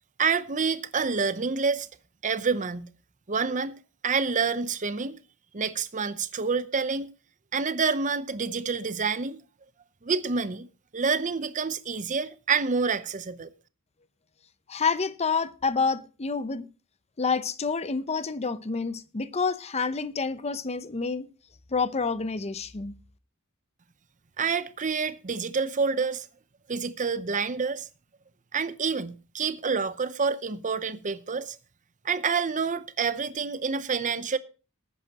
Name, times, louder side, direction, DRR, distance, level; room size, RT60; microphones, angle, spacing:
voice 1, 0.2-1.9 2.2-2.9 3.3-5.2 5.5-7.1 7.5-9.4 10.0-10.7 10.9-13.5 24.4-26.3 26.7-27.9 28.5-31.6 32.0-34.4, right 5 dB, 35° right, 0.7 m, -28 dB
voice 2, 14.7-16.7 17.2-21.3 21.7-22.9, left 4 dB, 30° left, 0.7 m, -28 dB
19.0 x 9.7 x 2.9 m
head